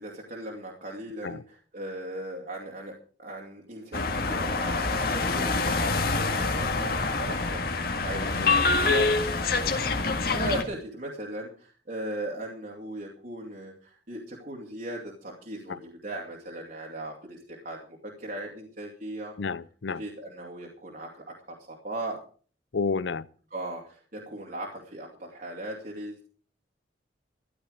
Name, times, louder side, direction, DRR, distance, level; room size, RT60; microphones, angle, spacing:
voice 1, 0.0-9.1 10.3-17.8 18.0-19.3 19.9-22.2 23.5-26.3, right 1 dB, 50° right, 2.6 m, -38 dB
sound 1, 3.9-10.6, left 3 dB, 55° left, 1.9 m, -26 dB
voice 2, 19.4-20.0 22.7-23.2, left 4 dB, 85° left, 0.6 m, -30 dB
14.0 x 12.0 x 5.0 m
head